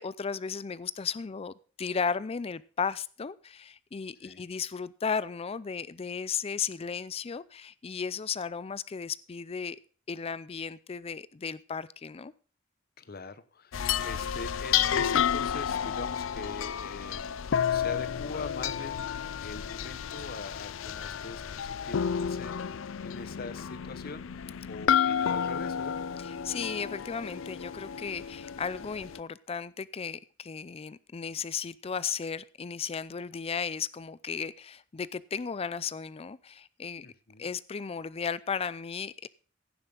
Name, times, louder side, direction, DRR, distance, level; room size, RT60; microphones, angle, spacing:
voice 1, 0.0-9.8 10.1-12.3 26.2-37.1 37.4-39.3, left 6 dB, 30° left, 18 dB, 0.4 m, -35 dB
voice 2, 13.0-22.5 23.0-26.0 37.0-37.5, left 4 dB, 50° left, 14 dB, 0.9 m, -43 dB
sound 1, 13.7-29.2, left 8 dB, 85° left, 0.5 m, -31 dB
16.0 x 7.1 x 3.9 m, 0.40 s
head